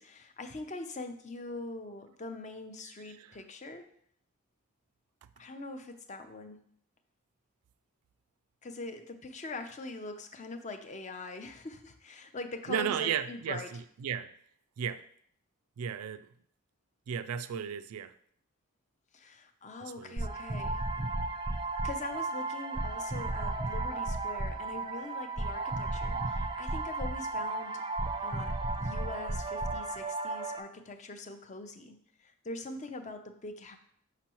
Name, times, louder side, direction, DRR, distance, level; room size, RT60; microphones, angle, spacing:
voice 1, 0.0-3.9 5.4-6.6 8.6-13.7 19.1-20.9 21.8-27.8 28.2-33.8, left 3 dB, 35° left, 0.5 m, -43 dB
voice 2, 12.7-14.3 14.8-15.1 15.8-16.3 17.1-18.1 19.8-20.2, right 8 dB, 90° right, 0.3 m, -34 dB
sound 1, 20.2-30.6, right 2 dB, 25° right, 0.4 m, -34 dB
6.1 x 5.9 x 3.0 m
head